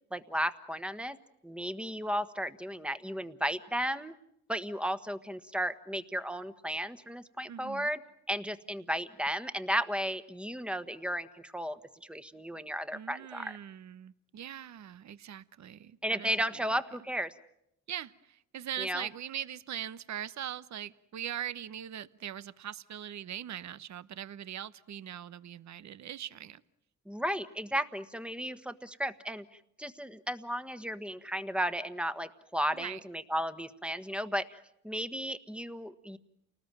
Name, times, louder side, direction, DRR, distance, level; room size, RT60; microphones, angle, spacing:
voice 1, 0.1-1.2 1.4-4.1 4.5-8.0 8.3-13.6 16.0-17.3 18.8-19.1 27.1-29.4 29.8-36.2, equal, 5° right, 11 dB, 1.4 m, -34 dB
voice 2, 7.5-7.9 12.9-16.8 17.9-26.6 32.7-33.0, right 10 dB, 55° right, 17 dB, 1.0 m, -41 dB
29.5 x 19.5 x 9.1 m, 0.78 s
cardioid pair, 80°, 33 cm